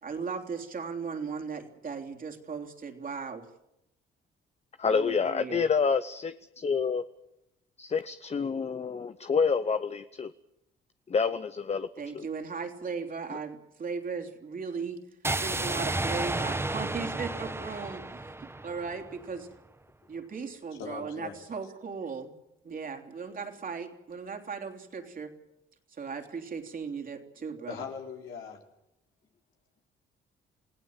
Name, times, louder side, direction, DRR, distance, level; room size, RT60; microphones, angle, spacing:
voice 1, 0.0-3.5 4.9-5.7 12.0-15.0 15.4-19.5 20.1-22.3 22.6-25.3 25.9-27.8, right 5 dB, 45° right, 3 dB, 3.5 m, -37 dB
voice 2, 4.8-7.0 7.8-10.3 11.1-11.9 12.1-12.3, left 5 dB, 35° left, 11 dB, 0.9 m, -28 dB
sound 1, 15.2-19.3, right 2 dB, 10° right, 1.1 m, -32 dB
voice 3, 20.8-21.4 27.7-28.6, left 6 dB, 80° left, 2 dB, 3.9 m, -40 dB
28.0 x 17.0 x 7.5 m, 0.86 s
cardioid pair, 90°, 20 cm